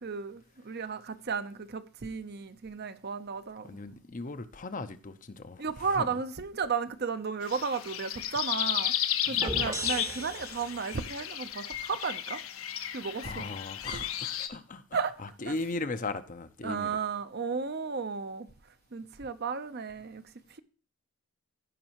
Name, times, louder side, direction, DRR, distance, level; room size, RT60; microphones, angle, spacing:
voice 1, 0.0-3.8 5.6-8.9 9.2-12.4 12.9-13.5 13.9-14.0 14.9-15.1 16.6-18.5 18.9-20.2, right 5 dB, 45° right, 0.6 m, -34 dB
voice 2, 3.6-6.2 9.3-9.6 13.2-17.0, left 3 dB, 35° left, 0.6 m, -38 dB
sound 1, 7.4-14.5, left 10 dB, 65° left, 0.9 m, -33 dB
sound 2, 9.4-11.1, right 1 dB, 15° right, 0.8 m, -37 dB
16.0 x 5.3 x 2.9 m
head